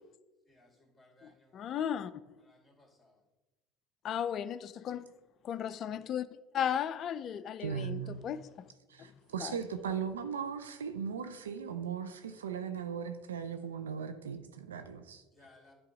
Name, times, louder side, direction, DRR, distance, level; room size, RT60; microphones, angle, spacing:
voice 1, 0.5-1.6 2.4-3.1 15.3-15.7, left 2 dB, 10° left, 2.4 m, -62 dB
voice 2, 1.5-2.1 4.0-5.1 5.4-6.3 6.5-8.4 9.4-9.6, left 9 dB, 45° left, 0.4 m, -35 dB
voice 3, 7.6-8.3 8.9-15.2, right 7 dB, 90° right, 0.5 m, -38 dB
10.0 x 3.5 x 5.2 m
hypercardioid pair, 75°, 0 cm